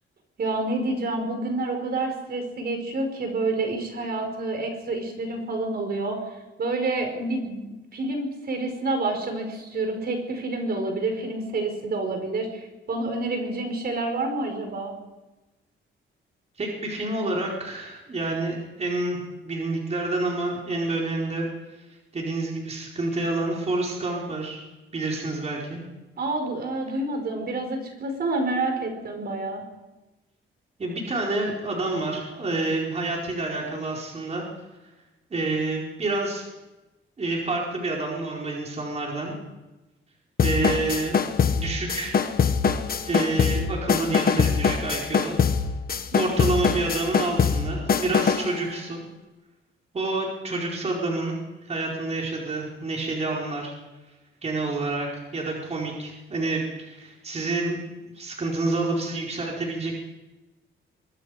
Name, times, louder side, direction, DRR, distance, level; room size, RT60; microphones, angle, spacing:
voice 1, 0.4-6.2 6.6-14.9 26.2-29.6 46.1-46.2, right 2 dB, 50° right, 4 dB, 5.2 m, -28 dB
voice 2, 16.6-21.5 22.1-24.6 24.9-25.8 30.8-34.4 35.3-36.5 37.2-39.3 40.4-41.2 41.5-42.2 43.0-45.4 46.1-49.0 49.9-51.4 51.7-53.7 54.4-57.8 58.1-59.9, right 2 dB, 30° right, -2 dB, 4.8 m, -28 dB
sound 1, 40.4-48.5, left 6 dB, 45° left, 1.5 m, -23 dB
24.5 x 23.5 x 5.1 m, 1.1 s
wide cardioid pair, 155°, 21 cm